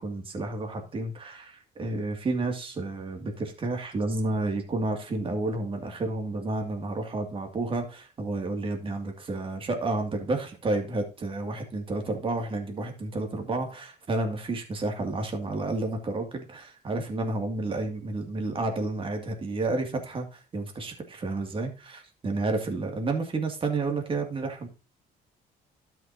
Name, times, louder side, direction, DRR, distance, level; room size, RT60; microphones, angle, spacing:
voice 1, 0.0-24.7, right 2 dB, 30° right, 4 dB, 2.3 m, -31 dB
12.5 x 5.8 x 2.7 m, 0.32 s
cardioid pair, 110°, 17 cm